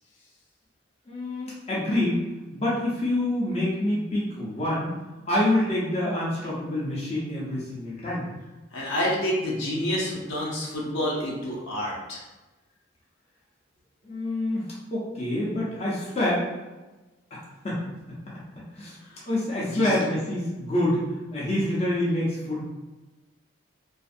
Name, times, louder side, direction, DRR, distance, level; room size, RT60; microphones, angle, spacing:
voice 1, 1.1-2.2 2.5-4.9 5.3-8.3 14.0-14.7 14.9-16.5 17.3-17.4 17.6-17.8 18.3-19.0 19.3-22.6, left 1 dB, 30° left, -7 dB, 0.6 m, -27 dB
voice 2, 8.7-12.2 19.6-19.9, equal, 80° left, -4 dB, 0.7 m, -28 dB
2.5 x 2.4 x 2.5 m, 1.1 s
head